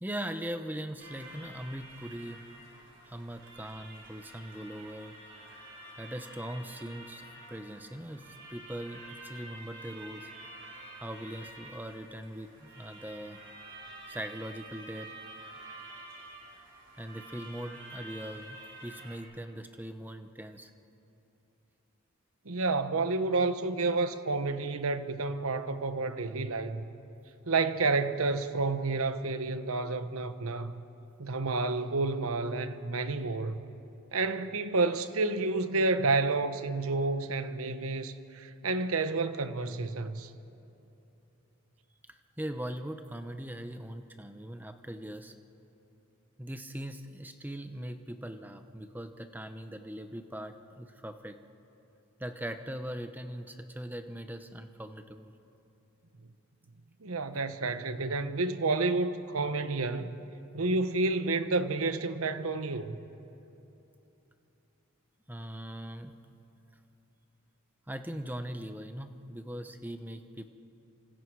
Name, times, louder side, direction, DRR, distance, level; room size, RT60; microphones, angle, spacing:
voice 1, 0.0-2.4 3.0-5.2 5.9-10.3 11.0-13.4 14.1-15.1 17.0-20.7 42.1-45.3 46.4-51.4 52.2-55.3 65.3-66.2 67.9-70.5, right 1 dB, 10° right, 0.8 m, -40 dB
sound 1, 1.0-19.2, right 1 dB, 55° right, 4.4 m, -49 dB
voice 2, 22.4-26.8 27.5-30.8 31.2-33.6 34.1-40.3 57.0-60.2 60.5-63.0, right 3 dB, 75° right, 1.0 m, -30 dB
29.0 x 25.5 x 4.8 m
head